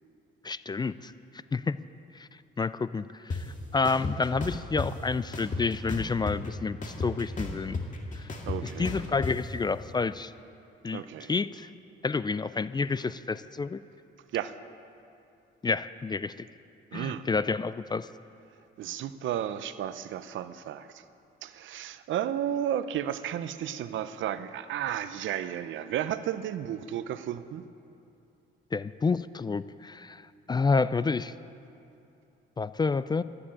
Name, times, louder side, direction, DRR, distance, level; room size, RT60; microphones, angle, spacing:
voice 1, 0.4-1.1 1.5-1.8 2.1-2.3 2.6-3.5 3.7-7.8 8.1-8.3 8.6-10.3 10.8-11.0 11.3-11.7 12.0-13.8 15.6-16.5 16.9-18.1 28.7-30.2 30.5-31.3 32.6-33.2, left 4 dB, 20° left, 15 dB, 0.3 m, -29 dB
sound 1, 3.3-3.4 3.8-4.9 5.3-6.5 6.8-9.3, left 3 dB, 40° left, 2.0 m, -33 dB
voice 2, 8.5-9.1 10.9-11.3 14.3-14.5 16.9-17.2 18.8-21.0 21.4-27.6, right 10 dB, 75° right, 12 dB, 0.7 m, -33 dB
13.5 x 9.8 x 8.6 m, 2.7 s
cardioid pair, 90°, 20 cm